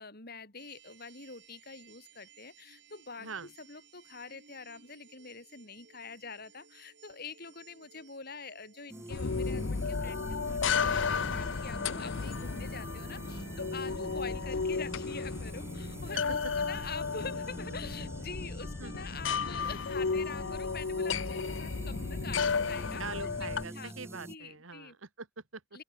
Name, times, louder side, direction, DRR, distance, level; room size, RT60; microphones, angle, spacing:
voice 1, 0.0-23.0 23.4-23.9 24.3-25.0 25.7-25.8, left 4 dB, 50° left, 5.7 m, -45 dB
sound 1, 0.6-20.5, right 7 dB, 60° right, 7.0 m, -61 dB
sound 2, 8.9-24.4, right 1 dB, 10° right, 1.2 m, -45 dB
sound 3, 9.1-23.6, left 5 dB, 65° left, 0.7 m, -33 dB
voice 2, 23.0-25.8, right 4 dB, 80° right, 1.9 m, -44 dB
open air
head